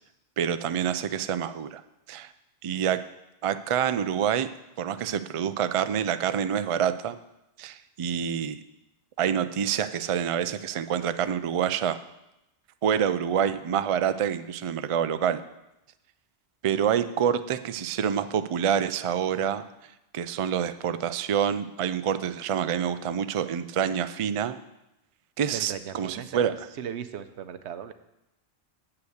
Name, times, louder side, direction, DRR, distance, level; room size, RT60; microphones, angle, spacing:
voice 1, 0.4-1.8 2.1-2.3 2.6-3.0 3.4-4.5 4.8-7.2 7.6-8.6 9.2-12.0 12.8-15.4 16.6-19.6 20.1-24.6 25.4-26.5, right 8 dB, 60° right, 11 dB, 0.3 m, -27 dB
voice 2, 25.5-27.9, right 8 dB, 85° right, 11 dB, 1.0 m, -37 dB
8.0 x 5.8 x 7.9 m, 0.90 s
omnidirectional pair, 1.1 m